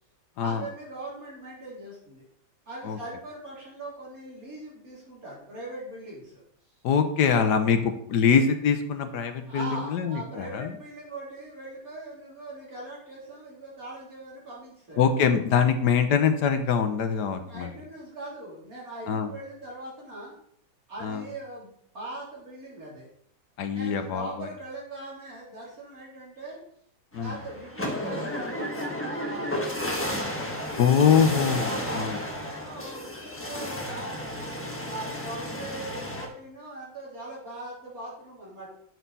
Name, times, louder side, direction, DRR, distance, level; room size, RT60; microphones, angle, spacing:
voice 1, 0.4-2.3 2.7-6.4 7.2-7.8 9.4-15.1 17.4-20.3 20.9-23.1 23.7-26.6 27.2-30.8 31.6-34.5 34.8-38.7, right 2 dB, 45° right, -5 dB, 3.8 m, -41 dB
voice 2, 6.8-10.7 15.0-17.7 19.1-19.3 21.0-21.2 23.6-24.5 27.1-27.3 30.8-32.2, left 7 dB, 65° left, 7 dB, 1.4 m, -23 dB
sound 1, 27.1-36.3, left 1 dB, 10° left, 0.8 m, -33 dB
9.1 x 6.5 x 4.1 m, 0.68 s
omnidirectional pair, 2.1 m